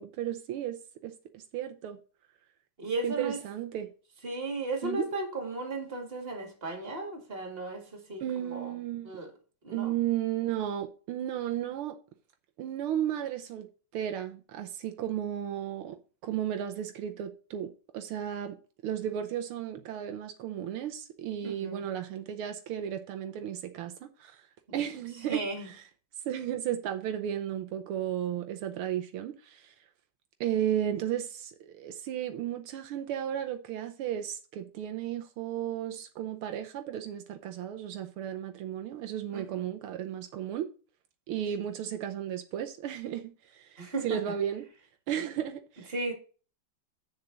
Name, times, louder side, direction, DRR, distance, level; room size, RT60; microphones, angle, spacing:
voice 1, 0.0-2.0 3.0-3.9 4.8-5.1 8.2-9.1 9.7-12.0 12.6-13.7 13.9-16.0 16.2-18.6 18.8-24.4 24.7-25.8 26.2-29.7 30.4-40.7 41.3-44.7 45.1-45.9, right 10 dB, 80° right, 1.7 m, -34 dB
voice 2, 2.8-3.4 4.2-8.2 8.5-8.7 9.0-9.3 9.6-9.9 21.4-21.8 24.7-24.8 25.3-25.7 39.3-39.5 43.8-44.2 45.9-46.1, right 2 dB, 25° right, 2.3 m, -35 dB
8.4 x 6.8 x 3.9 m
omnidirectional pair, 2.4 m